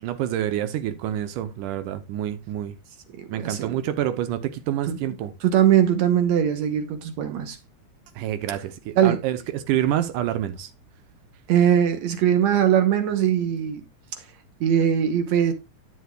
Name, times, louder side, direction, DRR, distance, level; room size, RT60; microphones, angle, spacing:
voice 1, 0.0-2.8 3.3-5.3 8.2-10.7, right 11 dB, 85° right, 2.3 m, -27 dB
voice 2, 3.2-3.7 4.9-5.0 5.4-7.6 9.0-9.2 11.5-13.8 14.2-14.3 14.6-15.5, right 9 dB, 65° right, 2.2 m, -21 dB
12.0 x 8.1 x 2.3 m
omnidirectional pair, 3.7 m